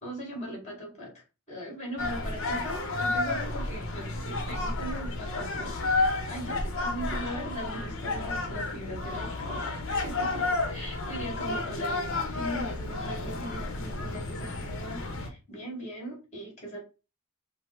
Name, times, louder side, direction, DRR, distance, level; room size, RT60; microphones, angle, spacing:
voice 1, 0.0-5.8 6.3-16.8, right 1 dB, 30° left, 0 dB, 2.1 m, -39 dB
sound 1, 2.0-15.3, left 2 dB, 60° left, 0.9 m, -31 dB
5.3 x 2.1 x 4.5 m, 0.30 s
head